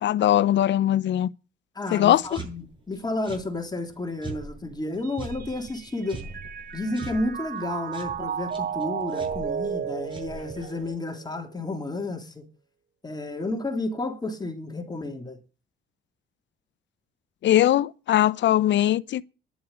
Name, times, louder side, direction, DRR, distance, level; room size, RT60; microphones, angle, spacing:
voice 1, 0.0-1.3 1.9-2.4 17.4-19.2, left 12 dB, 65° left, 0.8 m, -21 dB
voice 2, 1.7-6.2 6.7-12.4 13.0-15.4, left 2 dB, 20° left, 3.0 m, -31 dB
sound 1, 2.0-10.9, right 2 dB, 25° right, 7.3 m, -43 dB
Mallet percussion, 5.0-11.5, right 7 dB, 50° right, 1.0 m, -34 dB
11.0 x 8.3 x 9.4 m
cardioid pair, 90°, 20 cm